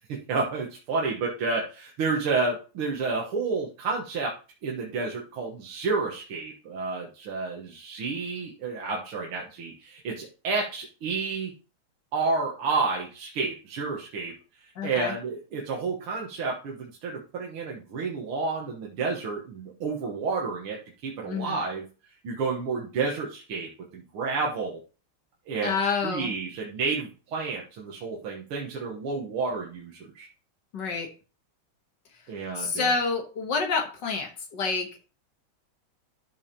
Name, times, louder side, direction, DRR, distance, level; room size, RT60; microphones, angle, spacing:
voice 1, 0.1-4.3 4.6-11.5 12.1-14.3 14.8-21.9 22.2-24.8 25.5-25.7 26.0-30.3 32.3-32.9, right 4 dB, 80° right, -2 dB, 2.2 m, -30 dB
voice 2, 14.8-15.1 21.3-21.6 25.6-26.3 30.7-31.1 32.6-34.9, left 4 dB, 60° left, 4 dB, 1.7 m, -28 dB
13.0 x 5.3 x 2.9 m, 0.34 s
omnidirectional pair, 2.4 m